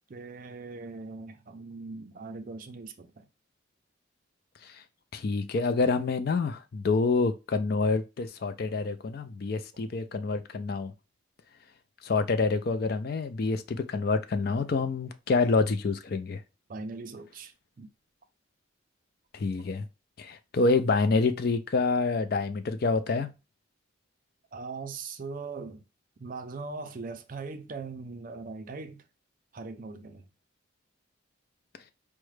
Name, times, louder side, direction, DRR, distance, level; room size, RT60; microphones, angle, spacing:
voice 1, 0.1-3.3 16.7-17.9 24.5-25.8 26.2-29.0 29.5-30.3, right 4 dB, 45° right, 0.4 m, -40 dB
voice 2, 5.1-10.9 12.0-16.4 19.3-19.8 20.2-23.3, left 3 dB, 50° left, 0.4 m, -27 dB
4.7 x 2.1 x 3.1 m
head